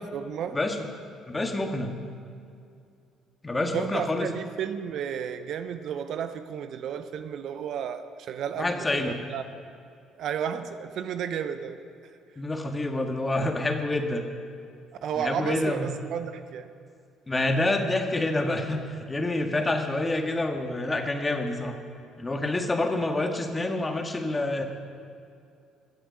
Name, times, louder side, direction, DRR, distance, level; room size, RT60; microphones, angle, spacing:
voice 1, 0.1-0.6 3.7-9.4 10.2-12.1 15.0-16.7 19.6-19.7, right 8 dB, 60° right, 10 dB, 0.6 m, -33 dB
voice 2, 1.3-1.9 3.4-4.3 8.6-9.2 12.4-14.2 15.2-15.9 17.3-21.8 22.2-24.6, left 2 dB, 20° left, 4 dB, 1.8 m, -27 dB
22.0 x 7.8 x 5.2 m, 2.4 s
hypercardioid pair, 50°, 0 cm